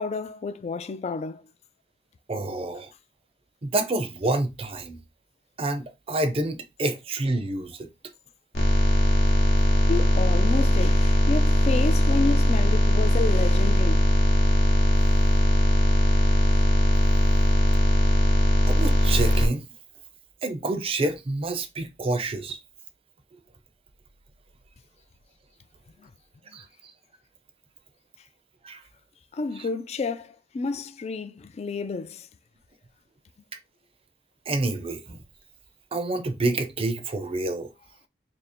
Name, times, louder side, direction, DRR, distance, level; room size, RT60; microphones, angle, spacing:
voice 1, 0.0-1.4 9.9-14.0 16.2-16.3 26.0-26.1 29.3-32.3, left 4 dB, 40° left, 0.3 m, -30 dB
voice 2, 2.3-2.9 3.6-5.0 5.6-7.9 18.7-19.6 20.4-22.6 26.5-26.6 28.6-28.8 34.5-35.2 35.9-37.7, right 2 dB, 35° right, 0.5 m, -28 dB
sound 1, 8.5-19.5, equal, 65° left, 0.9 m, -20 dB
2.8 x 2.6 x 4.2 m
head